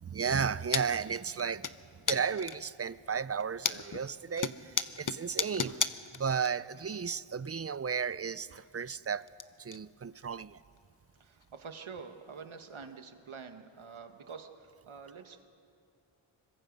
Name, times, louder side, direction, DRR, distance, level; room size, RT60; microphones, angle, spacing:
voice 1, 0.0-5.8 6.1-9.3 9.6-10.6, right 6 dB, 30° right, 18 dB, 0.5 m, -34 dB
sound 1, 0.7-0.9 1.1-1.7 2.1-2.7 3.2-4.0 4.4-6.5 6.8-6.9 8.1-8.2 8.5-9.4 9.7-9.8 10.2-10.3 10.8-10.9 11.4-11.5 12.7-12.8, left 6 dB, 40° left, 0.8 m, -33 dB
voice 2, 11.2-15.4, right 5 dB, 75° right, 6 dB, 1.7 m, -47 dB
25.5 x 23.0 x 5.4 m, 2.5 s
wide cardioid pair, 65°, 49 cm